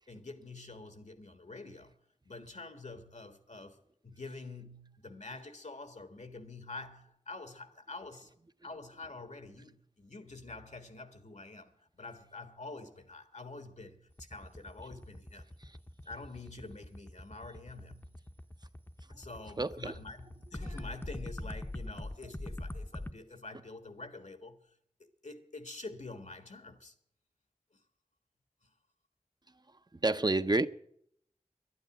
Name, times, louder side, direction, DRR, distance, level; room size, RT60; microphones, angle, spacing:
voice 1, 0.1-1.9 2.2-8.3 8.6-15.5 16.0-18.2 19.1-24.6 25.0-26.9 28.6-28.7, left 3 dB, 70° left, 1.6 m, -47 dB
sound 1, 14.1-23.1, left 1 dB, 20° left, 0.7 m, -42 dB
voice 2, 19.6-19.9 20.6-20.8 30.0-30.7, right 2 dB, 35° right, 0.6 m, -29 dB
12.0 x 9.4 x 9.0 m
wide cardioid pair, 60°, 12 cm